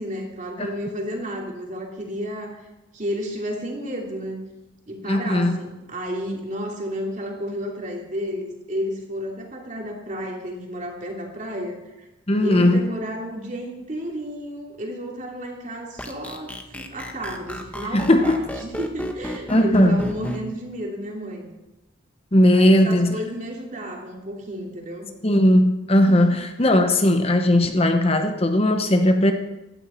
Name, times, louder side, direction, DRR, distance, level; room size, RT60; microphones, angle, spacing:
voice 1, 0.0-2.7 2.9-4.4 4.9-12.1 12.4-21.5 22.5-25.1 26.1-26.3, equal, 40° right, 0 dB, 2.9 m, -32 dB
voice 2, 5.1-5.6 12.3-12.8 17.9-18.4 19.5-20.0 22.3-23.1 25.2-29.3, left 1 dB, 30° left, 6 dB, 0.9 m, -18 dB
sound 1, 16.0-20.4, equal, 5° left, 1.0 m, -30 dB
16.0 x 13.0 x 4.4 m, 1.0 s
head